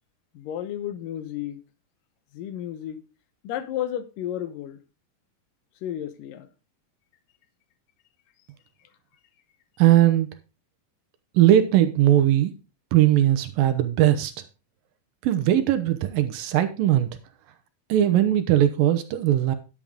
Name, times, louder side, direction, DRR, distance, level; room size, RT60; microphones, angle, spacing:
voice 1, 0.3-1.6 2.3-3.0 3.4-4.8 5.8-6.5, left 11 dB, 75° left, 2.4 m, -32 dB
voice 2, 9.8-10.3 11.3-12.5 12.9-14.3 15.2-17.2 17.9-19.6, right 12 dB, 75° right, 2.3 m, -19 dB
10.5 x 8.6 x 3.6 m
omnidirectional pair, 4.4 m